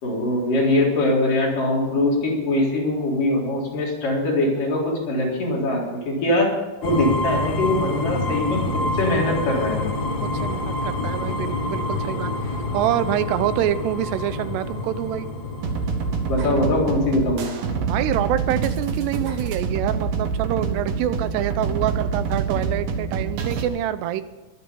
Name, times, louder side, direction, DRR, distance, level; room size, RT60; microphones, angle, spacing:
voice 1, 0.0-6.5 6.8-9.9 16.3-17.5, left 1 dB, 55° left, -3 dB, 5.5 m, -22 dB
sound 1, 6.8-18.6, left 2 dB, 85° left, 0.8 m, -28 dB
voice 2, 10.2-12.3 12.7-15.3 17.8-24.2, right 12 dB, 85° right, 13 dB, 2.9 m, -26 dB
sound 2, 15.6-23.6, right 5 dB, 60° right, 3.1 m, -26 dB
22.0 x 9.3 x 5.4 m, 1.2 s
omnidirectional pair, 4.7 m